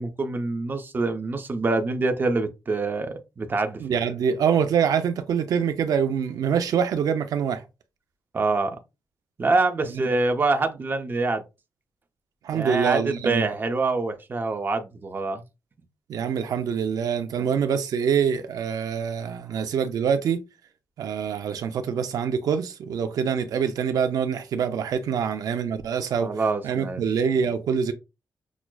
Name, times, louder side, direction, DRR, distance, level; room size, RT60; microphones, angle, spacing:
voice 1, 0.0-3.8 8.3-8.8 9.4-11.4 12.5-15.4 17.4-17.5 26.2-27.0, right 3 dB, 35° right, 0.6 m, -25 dB
voice 2, 3.8-7.6 9.9-10.1 12.4-13.5 16.1-20.4 21.0-26.3 26.6-27.9, right 7 dB, 80° right, 0.4 m, -25 dB
5.9 x 2.1 x 2.2 m
wide cardioid pair, 115°, 6 cm